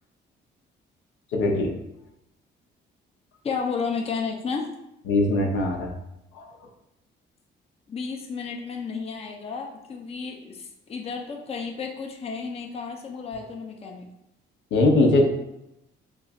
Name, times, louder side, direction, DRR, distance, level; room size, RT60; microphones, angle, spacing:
voice 1, 1.3-1.7 5.1-5.9 6.3-6.5 14.7-15.2, left 2 dB, 80° left, 1 dB, 0.7 m, -20 dB
voice 2, 3.4-4.7 7.9-14.1, left 5 dB, 30° left, 2 dB, 0.5 m, -32 dB
3.1 x 2.4 x 4.0 m, 0.85 s
cardioid pair, 90°, 20 cm